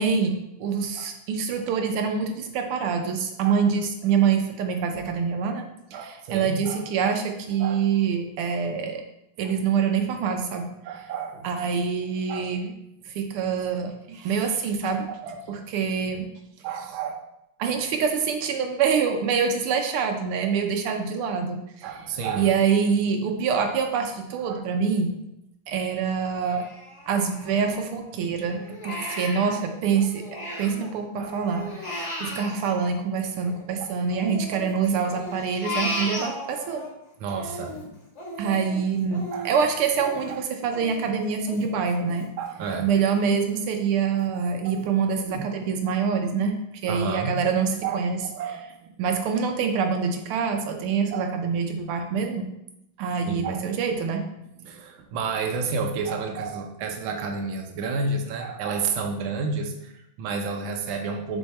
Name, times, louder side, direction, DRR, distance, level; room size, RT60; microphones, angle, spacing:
voice 1, 0.0-5.6 5.9-9.0 9.4-10.7 11.4-12.7 13.1-15.1 15.5-16.3 17.6-21.9 22.4-25.2 25.7-26.6 27.1-30.2 30.6-36.9 38.4-42.3 42.8-46.6 46.8-48.2 49.0-52.5 53.0-54.2, right 6 dB, 85° right, 4 dB, 1.7 m, -25 dB
voice 2, 5.9-6.8 7.6-7.8 10.8-11.5 12.3-12.5 14.8-15.6 16.6-17.2 21.8-22.5 24.4-24.6 31.2-31.5 33.8-33.9 37.2-37.8 39.3-39.5 40.3-40.4 42.4-42.9 44.3-44.4 44.6-44.8 46.9-47.4 47.8-48.9 51.1-51.3 53.2-53.6 54.6-61.4, right 4 dB, 70° right, 3 dB, 1.5 m, -31 dB
Crying sobbing, 26.4-28.1 28.5-30.9 31.2-33.6 34.1-36.9 37.3-42.8 43.2-43.3 43.7-44.3 44.8-44.9 45.3-45.5, left 1 dB, 35° left, 2.0 m, -36 dB
7.1 x 3.9 x 4.2 m, 0.82 s
omnidirectional pair, 2.4 m